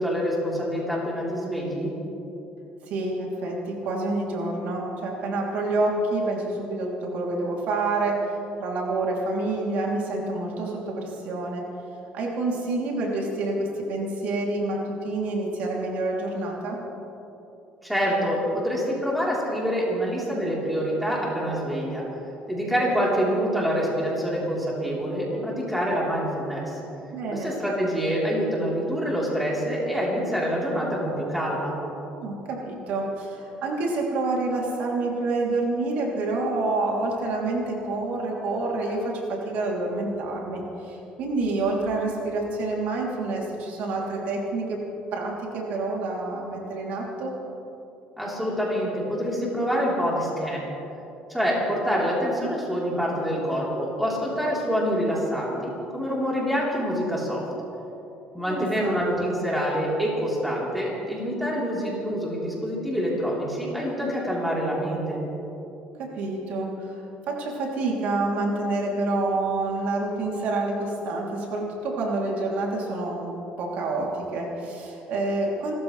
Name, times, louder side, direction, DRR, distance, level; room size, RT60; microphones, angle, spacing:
voice 1, 0.0-1.9 17.8-22.0 22.5-26.8 27.3-31.7 48.2-50.7 51.3-57.4 58.3-65.2, equal, ahead, -6 dB, 3.8 m, -26 dB
voice 2, 2.8-8.3 8.6-11.6 12.1-16.8 27.1-27.5 32.2-44.8 45.1-47.3 58.5-59.0 66.0-66.9 67.3-75.8, right 2 dB, 70° right, -2 dB, 3.2 m, -28 dB
28.5 x 14.0 x 3.3 m, 3.0 s
cardioid pair, 150°, 3 cm